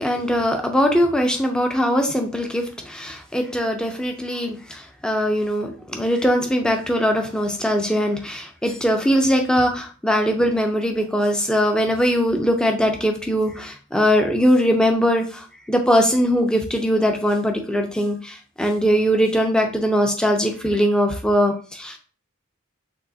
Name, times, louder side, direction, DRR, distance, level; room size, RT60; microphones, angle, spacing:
voice 1, 0.0-22.0, equal, 5° left, 3 dB, 0.6 m, -21 dB
6.2 x 2.9 x 2.8 m, 0.39 s
head